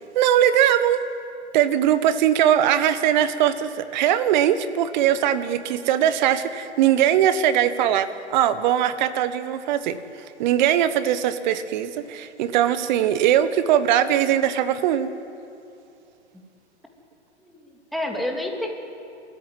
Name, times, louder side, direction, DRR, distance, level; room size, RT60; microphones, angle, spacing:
voice 1, 0.1-1.0 1.5-10.0 10.4-15.1, right 10 dB, 40° right, 12 dB, 1.4 m, -20 dB
voice 2, 17.4-18.7, left 1 dB, ahead, 1 dB, 3.0 m, -29 dB
28.5 x 14.5 x 9.5 m, 2.6 s
figure-of-eight pair, 105°, 34 cm